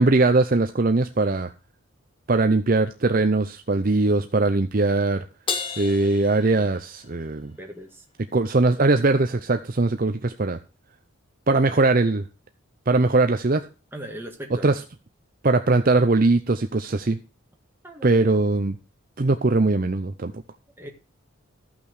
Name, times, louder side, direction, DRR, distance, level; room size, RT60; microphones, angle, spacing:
voice 1, 0.0-1.5 2.3-5.3 5.8-7.5 8.3-10.6 11.5-12.2 12.9-13.6 14.6-14.7 15.4-17.2 18.0-18.8 19.2-20.3, right 3 dB, 40° right, 8 dB, 0.6 m, -20 dB
Crash cymbal, 5.5-7.2, left 5 dB, 25° left, 1.0 m, -32 dB
voice 2, 7.6-8.0 13.9-14.8 17.8-18.2 20.8-20.9, right 1 dB, 10° right, 2 dB, 1.9 m, -39 dB
14.0 x 6.0 x 6.4 m, 0.33 s
head